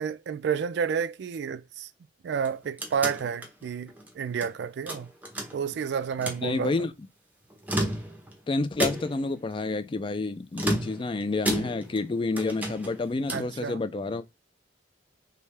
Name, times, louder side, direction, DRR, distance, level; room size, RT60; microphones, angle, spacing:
voice 1, 0.0-1.9 2.2-5.1 5.5-6.7 13.3-13.8, right 7 dB, 65° right, 0.3 m, -30 dB
sound 1, 2.3-4.5 4.9-5.8 6.1-6.5 7.5-8.4 8.8-9.3 10.5-12.1 12.4-13.6, right 1 dB, 10° right, 0.7 m, -32 dB
voice 2, 6.4-6.9 8.5-14.3, left 3 dB, 25° left, 0.3 m, -29 dB
3.3 x 2.7 x 3.2 m
head